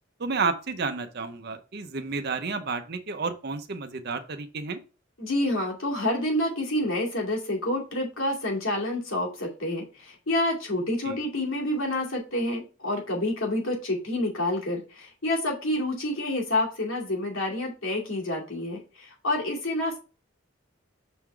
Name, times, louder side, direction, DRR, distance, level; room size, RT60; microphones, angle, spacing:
voice 1, 0.2-4.8 11.0-11.2, right 4 dB, 50° right, 8 dB, 0.7 m, -31 dB
voice 2, 5.2-20.0, left 1 dB, 85° left, -1 dB, 2.5 m, -28 dB
6.0 x 3.8 x 4.5 m, 0.33 s
head